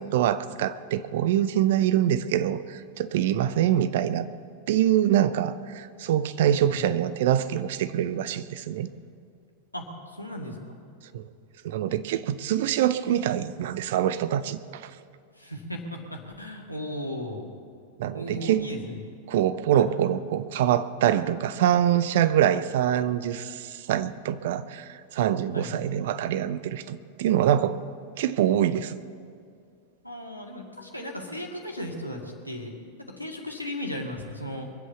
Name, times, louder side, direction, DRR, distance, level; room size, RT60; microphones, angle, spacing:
voice 1, 0.0-4.3 4.7-8.9 11.1-11.3 11.6-14.9 18.0-18.6 19.3-27.8 28.2-29.0, right 11 dB, 55° right, 13 dB, 0.6 m, -25 dB
voice 2, 6.4-6.8 9.7-10.8 15.4-17.5 18.1-19.0 19.7-19.9 25.5-25.8 30.0-34.7, left 1 dB, 90° left, 1 dB, 2.1 m, -36 dB
23.0 x 8.2 x 7.0 m, 2.4 s
figure-of-eight pair, 90°, 0 cm